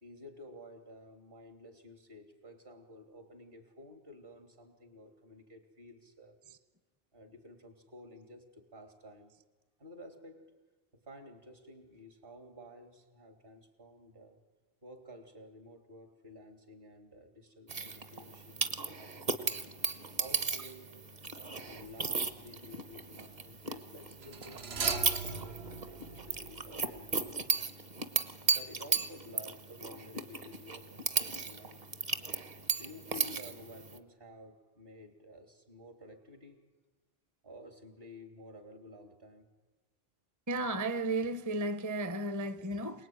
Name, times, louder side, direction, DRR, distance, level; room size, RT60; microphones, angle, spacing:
voice 1, 0.0-6.4 7.1-9.3 9.8-10.5 10.9-14.4 14.8-19.7 20.2-21.0 21.3-27.7 28.5-31.8 32.8-36.6 37.4-39.5 42.1-42.2 42.6-42.9, left 1 dB, 65° right, 3.3 m, -52 dB
sound 1, 17.7-34.0, right 4 dB, 45° right, 1.3 m, -36 dB
sound 2, 21.8-22.1 24.2-27.0 27.3-27.4, right 4 dB, 85° right, 1.5 m, -40 dB
voice 2, 40.5-43.1, right 2 dB, 20° right, 0.7 m, -34 dB
27.5 x 19.5 x 9.4 m
omnidirectional pair, 1.0 m